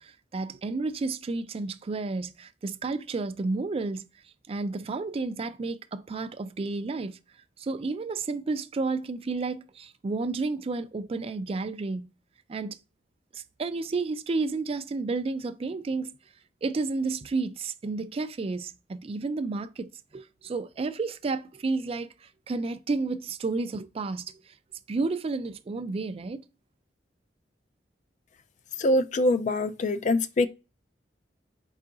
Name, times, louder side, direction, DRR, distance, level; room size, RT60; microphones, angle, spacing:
voice 1, 0.0-4.0 4.5-7.2 7.6-12.1 12.5-12.8 13.3-16.1 16.6-24.5 24.9-26.4, right 3 dB, 35° right, 0.4 m, -31 dB
voice 2, 28.8-30.5, left 1 dB, 45° left, 0.4 m, -24 dB
4.6 x 2.4 x 3.7 m
head